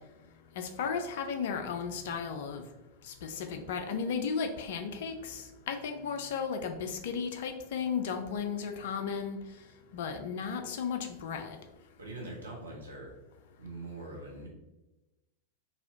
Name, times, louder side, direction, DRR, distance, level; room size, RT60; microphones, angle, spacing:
voice 1, 0.6-2.6 3.0-9.4 9.9-11.6, left 6 dB, 55° left, 6 dB, 0.4 m, -35 dB
voice 2, 12.0-13.2 13.6-14.5, right 2 dB, 75° right, -2 dB, 1.0 m, -43 dB
4.0 x 2.8 x 2.7 m, 1.0 s
figure-of-eight pair, 90°, 0 cm